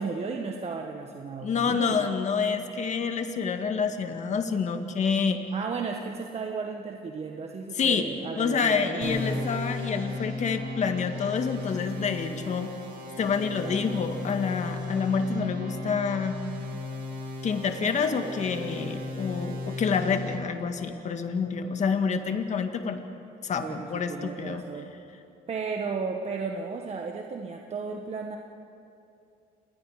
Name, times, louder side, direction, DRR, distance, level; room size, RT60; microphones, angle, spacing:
voice 1, 0.0-2.1 5.5-9.5 13.4-14.0 23.6-24.9 25.5-28.4, right 5 dB, 40° right, 2 dB, 1.5 m, -34 dB
voice 2, 1.4-5.4 7.7-8.0 8.4-12.7 13.2-16.4 17.4-23.0 23.4-24.6, left 5 dB, 45° left, 6 dB, 1.8 m, -28 dB
sound 1, 9.0-20.3, left 2 dB, 60° right, 5.5 m, -36 dB
28.5 x 21.0 x 5.0 m, 2.7 s
cardioid pair, 110°, 17 cm